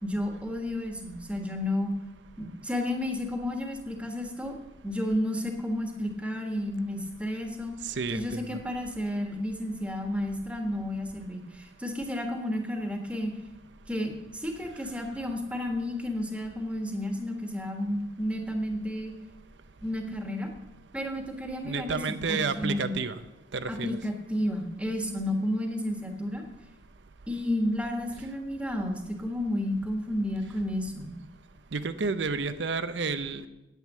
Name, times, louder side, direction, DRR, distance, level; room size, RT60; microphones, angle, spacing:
voice 1, 0.0-1.9 2.4-4.5 4.8-7.7 8.1-13.3 13.9-19.1 19.8-20.5 20.9-22.9 23.7-26.4 27.3-31.2, left 1 dB, 5° right, 3 dB, 1.4 m, -31 dB
voice 2, 7.9-8.6 21.6-23.2 23.5-23.9 31.7-33.5, right 4 dB, 90° right, 10 dB, 0.6 m, -30 dB
9.2 x 9.2 x 7.4 m, 0.95 s
head